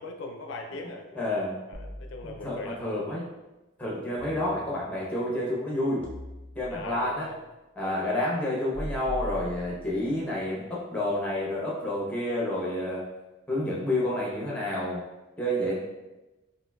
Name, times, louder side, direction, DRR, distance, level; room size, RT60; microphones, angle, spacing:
voice 1, 0.0-1.2 1.7-2.8 6.7-7.4 7.8-8.2, left 2 dB, 70° left, 3 dB, 0.4 m, -40 dB
voice 2, 1.1-1.6 2.2-3.3 3.8-6.0 6.6-7.3 7.8-13.0 13.5-15.0 15.4-15.8, left 1 dB, 5° left, -4 dB, 0.6 m, -29 dB
sound 1, 1.7-2.8 4.2-5.1 6.0-7.1 8.7-10.2, equal, 65° right, 0.8 m, -41 dB
4.3 x 2.5 x 2.2 m, 1.1 s
head